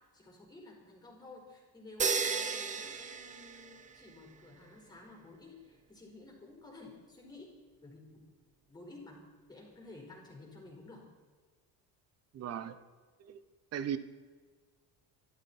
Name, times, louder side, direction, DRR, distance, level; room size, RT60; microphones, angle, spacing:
voice 1, 0.0-8.2 8.7-11.1, left 2 dB, 10° left, 0 dB, 4.6 m, -53 dB
sound 1, 2.0-4.1, right 5 dB, 20° right, 0.7 m, -34 dB
voice 2, 12.3-12.8 13.2-13.4 13.7-14.0, right 9 dB, 40° right, 13 dB, 1.1 m, -36 dB
26.5 x 12.0 x 4.4 m, 1.4 s
cardioid pair, 175°, 40 cm